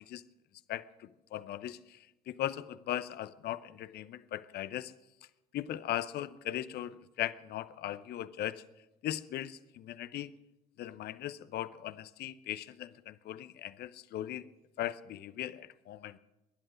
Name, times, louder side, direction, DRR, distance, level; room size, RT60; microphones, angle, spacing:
voice 1, 1.3-1.8 2.3-4.9 5.5-8.6 9.0-10.3 10.8-14.4 14.8-16.2, left 12 dB, 50° left, 16 dB, 0.7 m, -38 dB
20.5 x 11.0 x 6.3 m, 1.0 s
hypercardioid pair, 60°, 21 cm